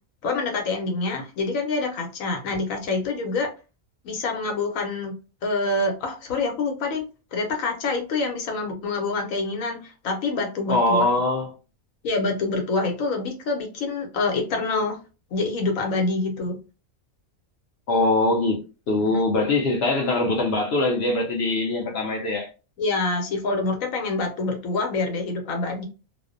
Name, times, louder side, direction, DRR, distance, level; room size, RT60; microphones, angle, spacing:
voice 1, 0.2-3.5 4.0-5.1 5.4-7.0 7.3-11.1 12.0-15.0 15.3-16.6 19.1-19.2 22.8-25.9, left 3 dB, 80° left, 1.1 m, -26 dB
voice 2, 10.7-11.5 17.9-22.5, left 2 dB, 65° left, 0.7 m, -22 dB
2.5 x 2.1 x 2.4 m
omnidirectional pair, 1.4 m